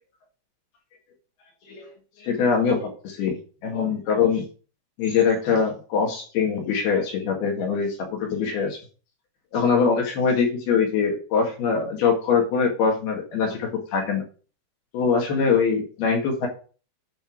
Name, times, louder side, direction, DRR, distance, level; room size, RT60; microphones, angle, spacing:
voice 1, 2.2-3.4 3.6-4.4 5.0-8.8 9.5-14.2 14.9-16.5, left 5 dB, 60° left, 1 dB, 3.3 m, -23 dB
11.0 x 4.3 x 6.2 m, 0.38 s
omnidirectional pair, 5.9 m